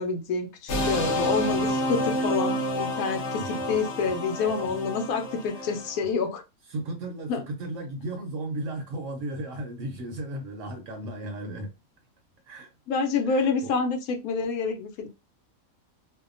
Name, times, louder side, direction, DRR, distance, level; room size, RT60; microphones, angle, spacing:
voice 1, 0.0-6.4 7.3-7.4 12.9-15.1, left 5 dB, 85° left, 1.0 m, -28 dB
sound 1, 0.7-6.0, equal, 60° left, 0.8 m, -29 dB
voice 2, 6.7-11.7 12.5-12.7 13.2-13.7, right 1 dB, 65° right, 1.0 m, -35 dB
2.7 x 2.2 x 2.5 m
omnidirectional pair, 1.5 m